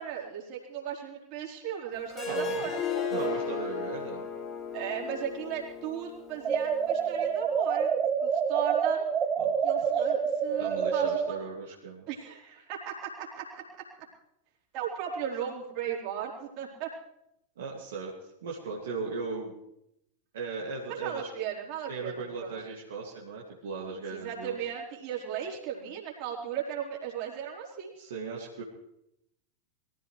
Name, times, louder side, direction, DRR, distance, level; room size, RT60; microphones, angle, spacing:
voice 1, 0.0-3.3 4.7-7.9 8.2-9.0 9.6-11.5 12.1-13.6 14.7-16.9 20.9-22.5 24.1-27.9, right 9 dB, 40° right, -3 dB, 4.1 m, -36 dB
Harp, 2.1-7.3, left 5 dB, 25° left, 1.7 m, -35 dB
voice 2, 2.2-2.7 3.1-4.3 9.4-9.5 10.6-12.1 17.6-18.1 18.4-19.5 20.3-21.3 21.9-24.7 28.0-28.6, right 4 dB, 60° right, -3 dB, 2.3 m, -37 dB
sound 1, 6.4-11.3, right 7 dB, 25° right, 0.7 m, -27 dB
23.0 x 15.0 x 3.2 m, 0.81 s
figure-of-eight pair, 90°, 0 cm